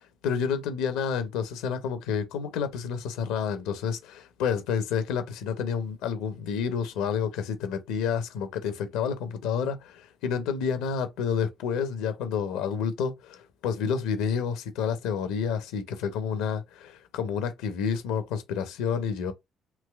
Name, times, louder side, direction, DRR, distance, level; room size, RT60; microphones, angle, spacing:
voice 1, 0.2-19.3, left 6 dB, 75° left, 0.5 m, -29 dB
3.2 x 2.8 x 2.2 m
hypercardioid pair, 50°, 0 cm